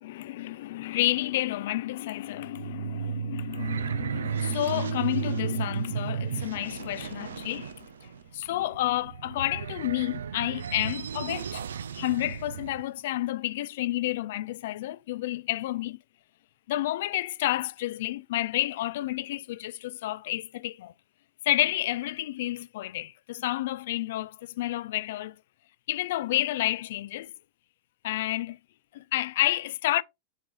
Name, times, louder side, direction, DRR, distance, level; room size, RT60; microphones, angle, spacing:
voice 1, 0.0-11.6 11.9-16.0 16.7-20.9 21.4-25.4 25.9-27.3 28.0-28.6 28.9-30.0, left 15 dB, 55° left, 0.3 m, -30 dB
sound 1, 2.3-12.8, right 7 dB, 65° right, 0.4 m, -34 dB
8.8 x 4.6 x 3.0 m
figure-of-eight pair, 90°, 0 cm